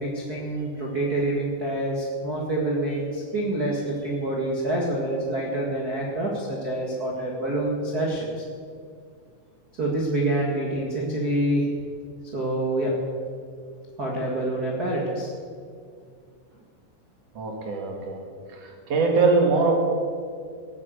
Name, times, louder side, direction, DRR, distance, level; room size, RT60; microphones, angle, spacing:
voice 1, 0.0-8.4 9.8-11.7 12.3-12.9 14.0-15.3, right 1 dB, 80° right, -2 dB, 0.8 m, -26 dB
voice 2, 17.3-18.2 18.6-19.7, right 4 dB, 50° right, 1 dB, 2.2 m, -22 dB
17.0 x 8.9 x 6.9 m, 2.2 s
omnidirectional pair, 5.2 m